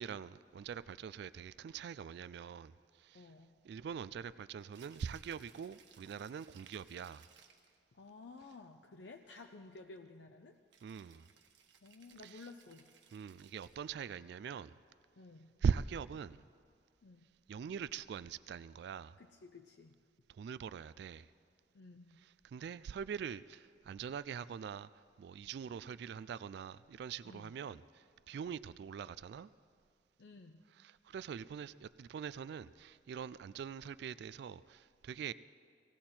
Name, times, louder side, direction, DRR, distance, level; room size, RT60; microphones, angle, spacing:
voice 1, 0.0-3.3 3.6-7.3 10.8-11.3 12.3-12.4 13.1-14.7 15.6-16.4 17.5-19.2 20.3-21.3 22.2-29.5 30.8-35.3, right 7 dB, 65° right, 0.3 m, -42 dB
voice 2, 3.1-3.6 7.9-10.6 11.8-12.9 15.2-15.6 17.0-17.3 19.2-20.0 21.7-22.2 27.2-27.6 30.2-30.7, left 3 dB, 70° left, 0.6 m, -54 dB
Rattle (instrument), 4.6-7.8 10.7-13.9, right 7 dB, 90° right, 1.3 m, -64 dB
17.5 x 17.0 x 4.4 m
head